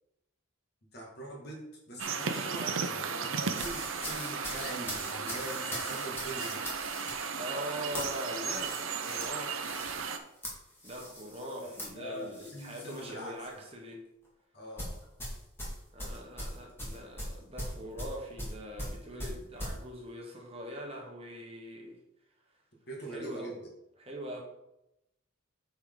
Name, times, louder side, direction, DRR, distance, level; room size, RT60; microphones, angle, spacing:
voice 1, 0.9-6.6 11.6-13.3 14.5-15.1 22.9-23.7, right 1 dB, 50° left, -2 dB, 2.0 m, -43 dB
sound 1, 2.0-10.2, right 5 dB, 70° right, 0.7 m, -35 dB
sound 2, 3.5-13.1 13.4-13.7 14.8-19.8, equal, 10° left, 1.7 m, -41 dB
voice 2, 7.4-10.0 10.8-14.1 15.9-22.0 23.1-23.5 24.0-24.4, equal, 25° right, 0 dB, 1.1 m, -42 dB
8.3 x 4.6 x 3.9 m, 0.86 s
head